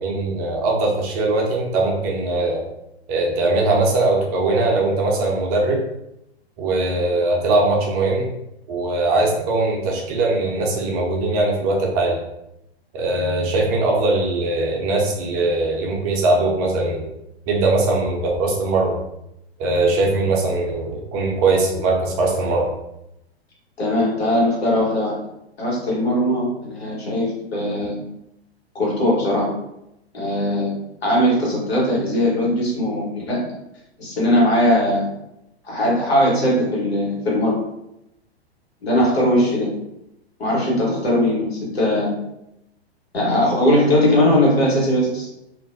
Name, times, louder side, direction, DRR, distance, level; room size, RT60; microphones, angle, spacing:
voice 1, 0.0-2.6 3.1-5.8 6.6-8.3 8.7-12.2 12.9-17.1 17.5-19.0 19.6-22.7, right 2 dB, 35° right, -1 dB, 0.6 m, -20 dB
voice 2, 23.8-25.1 25.6-28.0 28.7-29.5 30.1-30.7 31.0-33.4 34.0-35.1 35.6-37.6 38.8-39.7 40.4-42.1 43.1-45.3, left 1 dB, 70° left, -4 dB, 1.3 m, -19 dB
2.5 x 2.1 x 2.6 m, 0.85 s
figure-of-eight pair, 105°, 32 cm